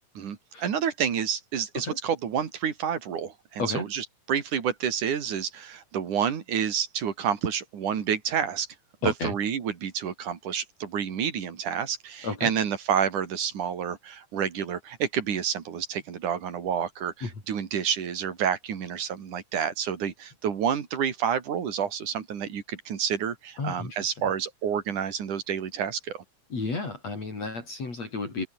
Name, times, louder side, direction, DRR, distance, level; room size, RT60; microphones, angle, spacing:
voice 1, 0.2-8.7 9.0-26.2, right 8 dB, 70° right, 4.1 m, -29 dB
voice 2, 9.0-9.3 12.2-12.5 17.2-17.3 23.6-24.1 26.5-28.5, left 3 dB, 50° left, 7.4 m, -32 dB
open air
omnidirectional pair, 3.7 m